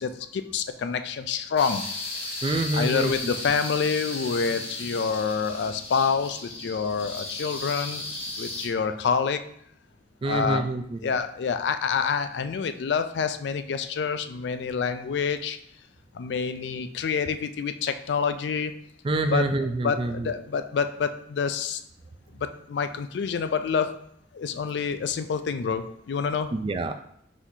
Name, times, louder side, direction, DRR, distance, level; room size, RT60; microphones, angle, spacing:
voice 1, 0.0-1.8 2.7-8.0 8.4-9.4 10.2-10.7 11.0-15.6 16.1-18.7 19.3-21.8 22.4-23.9 24.3-26.5, left 6 dB, 70° left, 10 dB, 0.3 m, -27 dB
sound 1, 1.6-8.7, left 2 dB, 30° left, 0.8 m, -35 dB
voice 2, 2.4-3.1 10.2-11.0 19.0-20.3 26.5-26.9, right 2 dB, 30° right, 7 dB, 0.3 m, -26 dB
4.4 x 4.1 x 2.7 m, 0.69 s
head